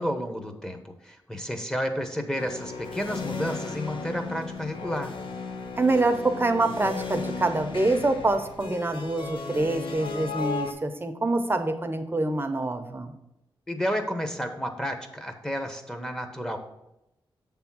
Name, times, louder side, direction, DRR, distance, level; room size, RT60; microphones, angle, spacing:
voice 1, 0.0-5.1 13.7-16.6, equal, 5° left, 6 dB, 1.0 m, -31 dB
sound 1, 2.3-10.7, left 4 dB, 85° left, 0.8 m, -35 dB
voice 2, 5.8-13.2, right 2 dB, 25° right, 7 dB, 0.7 m, -26 dB
7.9 x 3.5 x 6.1 m, 0.87 s
cardioid pair, 70°, 9 cm